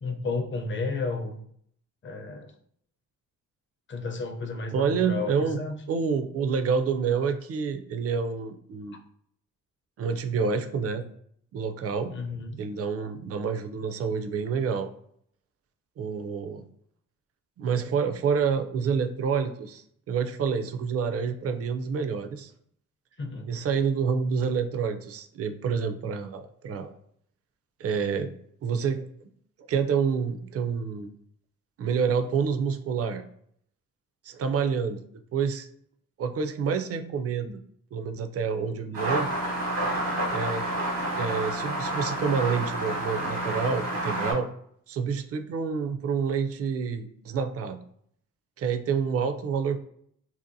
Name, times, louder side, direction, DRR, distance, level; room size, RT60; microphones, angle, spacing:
voice 1, 0.0-1.4 2.0-2.5 3.9-5.8 12.1-12.6 23.2-23.5, left 3 dB, 35° left, 3 dB, 0.6 m, -32 dB
voice 2, 4.7-5.6 5.9-9.0 10.0-11.0 11.5-12.1 12.6-14.9 16.0-16.6 17.6-22.5 23.5-26.9 27.8-28.3 28.6-29.0 29.7-31.1 31.8-33.2 34.2-35.0 35.3-35.7 36.2-37.6 37.9-39.3 40.3-40.7 41.2-44.5 44.9-47.8 48.6-49.8, right 6 dB, 45° right, 7 dB, 0.4 m, -28 dB
sound 1, 38.9-44.3, right 1 dB, 85° right, 1.2 m, -29 dB
2.7 x 2.1 x 2.6 m, 0.66 s
supercardioid pair, 60°, 34 cm